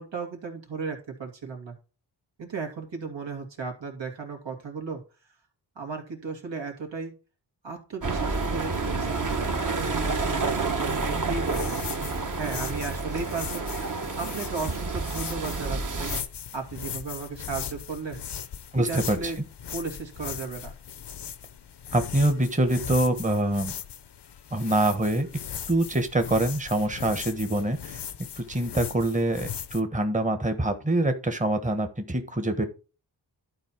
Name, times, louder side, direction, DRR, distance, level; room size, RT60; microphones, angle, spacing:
voice 1, 0.0-1.7 2.4-5.0 5.8-7.1 7.6-9.2 9.6-11.8 12.3-13.7 14.2-16.1 16.5-18.2 18.8-19.4 19.7-20.7, right 4 dB, 75° right, 2 dB, 2.6 m, -35 dB
sound 1, 8.0-16.2, right 3 dB, 45° right, 1.4 m, -29 dB
sound 2, 11.4-29.8, left 8 dB, 65° left, 0.8 m, -39 dB
voice 2, 18.7-19.3 21.9-23.7 24.5-25.3 25.7-28.0 28.4-32.6, right 1 dB, 15° right, 7 dB, 1.2 m, -25 dB
11.5 x 4.4 x 4.5 m, 0.34 s
cardioid pair, 65°, 45 cm